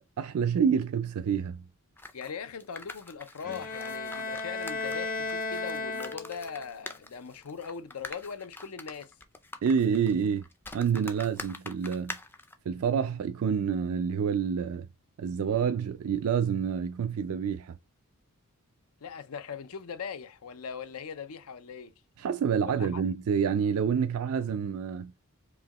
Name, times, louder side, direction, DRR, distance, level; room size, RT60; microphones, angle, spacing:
voice 1, 0.2-1.6 9.6-10.4 10.7-12.2 12.7-14.9 15.2-17.8 22.2-25.1, right 7 dB, 70° right, 0.4 m, -28 dB
sound 1, 2.0-12.5, left 2 dB, 10° left, 0.4 m, -45 dB
voice 2, 2.1-9.1 19.0-21.9 22.6-23.0, left 6 dB, 75° left, 0.5 m, -40 dB
Bowed string instrument, 3.4-6.6, left 3 dB, 40° left, 0.8 m, -34 dB
4.7 x 2.9 x 2.9 m
head